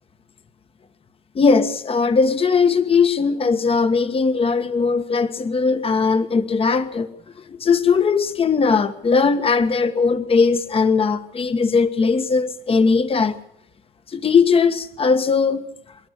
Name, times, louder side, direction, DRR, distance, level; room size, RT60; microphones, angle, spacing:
voice 1, 1.3-7.1 7.5-13.4 14.1-15.7, left 5 dB, 35° left, 9 dB, 1.5 m, -19 dB
25.5 x 12.5 x 9.5 m, 0.75 s
cardioid pair, 110°, 17 cm